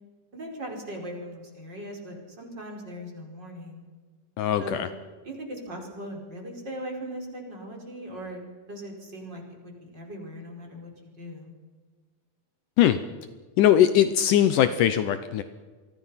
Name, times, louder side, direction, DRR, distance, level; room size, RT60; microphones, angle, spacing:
voice 1, 0.3-3.8 4.6-4.8 5.2-8.4 8.7-11.5, equal, 30° right, 1 dB, 5.3 m, -39 dB
voice 2, 4.4-4.9 12.8-13.0 13.6-15.4, left 11 dB, 75° left, 11 dB, 2.2 m, -20 dB
29.0 x 24.0 x 5.7 m, 1.5 s
omnidirectional pair, 4.1 m